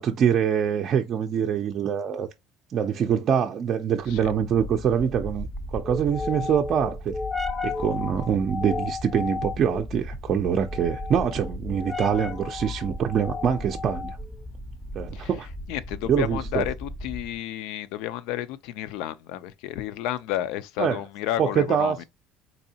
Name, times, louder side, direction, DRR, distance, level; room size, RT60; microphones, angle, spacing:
voice 1, 0.0-2.3 2.7-7.1 7.6-14.2 14.9-15.5 16.1-16.6 20.8-21.0 21.4-22.0, right 8 dB, 45° right, 0.4 m, -24 dB
sound 1, 4.0-17.4, left 3 dB, 5° left, 0.5 m, -34 dB
voice 2, 15.7-22.0, left 12 dB, 75° left, 0.4 m, -31 dB
4.0 x 2.6 x 2.7 m
supercardioid pair, 115°, 0 cm